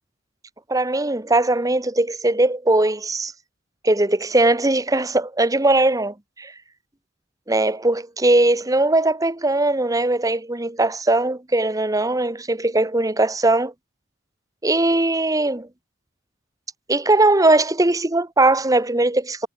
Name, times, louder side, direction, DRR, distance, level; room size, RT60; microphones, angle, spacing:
voice 1, 0.7-3.3 3.8-6.5 7.5-13.7 14.6-15.7 16.9-19.5, right 2 dB, 15° right, 1.1 m, -19 dB
head